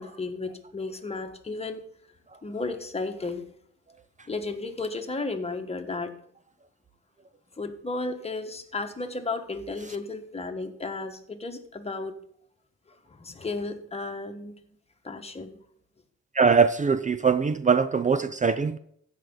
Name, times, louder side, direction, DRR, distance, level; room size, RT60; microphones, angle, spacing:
voice 1, 0.0-1.8 2.4-3.5 4.3-6.1 7.6-12.1 13.1-14.6 15.0-15.6, left 3 dB, 20° left, 5 dB, 1.4 m, -33 dB
voice 2, 16.3-18.8, right 5 dB, 25° right, 13 dB, 0.4 m, -22 dB
15.5 x 5.6 x 3.9 m, 0.67 s
cardioid pair, 90°, 30 cm